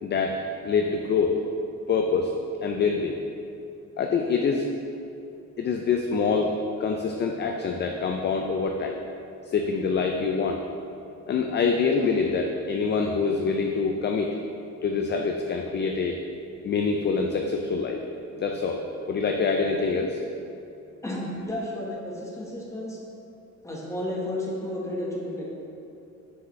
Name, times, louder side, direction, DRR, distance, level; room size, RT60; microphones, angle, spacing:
voice 1, 0.0-1.4 1.9-2.3 2.6-3.2 4.0-4.7 5.6-6.5 6.8-9.0 9.5-10.6 11.3-14.3 14.8-16.2 16.6-18.0 18.4-18.8 19.1-20.2, left 5 dB, 35° left, 3 dB, 0.4 m, -25 dB
voice 2, 21.0-23.0 23.6-25.5, left 1 dB, 10° left, -4 dB, 1.2 m, -32 dB
6.2 x 4.9 x 3.2 m, 2.7 s
cardioid pair, 90°, 30 cm